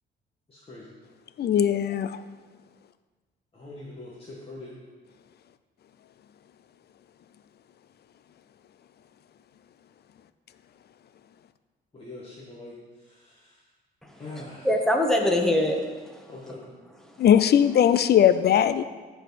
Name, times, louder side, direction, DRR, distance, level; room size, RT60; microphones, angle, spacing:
voice 1, 0.5-0.9 3.5-4.7 11.9-13.6 14.2-14.7 16.3-16.6, left 2 dB, 30° left, -6 dB, 1.8 m, -43 dB
voice 2, 1.4-2.2 17.2-18.8, left 9 dB, 55° left, 13 dB, 0.5 m, -19 dB
voice 3, 14.0-16.6 17.0-17.2, left 1 dB, ahead, 1 dB, 1.5 m, -26 dB
14.0 x 4.8 x 4.2 m, 1.3 s
cardioid pair, 90°, 20 cm